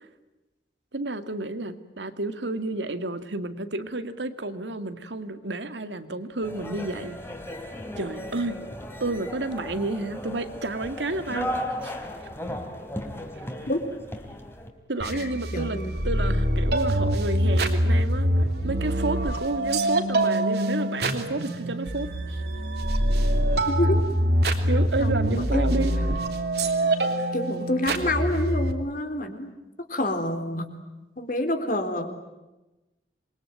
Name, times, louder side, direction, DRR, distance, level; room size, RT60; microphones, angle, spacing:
voice 1, 0.9-7.2 8.0-8.6 9.0-11.5 11.8-11.9 14.9-15.8 16.0-18.3 18.6-22.1 24.7-26.2, right 2 dB, 90° right, 10 dB, 2.3 m, -30 dB
sound 1, 6.4-14.7, left 1 dB, 15° left, 3.3 m, -36 dB
sound 2, 15.0-28.7, right 1 dB, 65° right, 3.2 m, -24 dB
voice 2, 15.2-15.9 23.7-24.0 25.0-25.7 27.3-29.5 29.9-30.7 31.2-32.2, left 1 dB, 50° left, 7 dB, 3.8 m, -28 dB
27.5 x 23.0 x 9.1 m, 1.0 s
head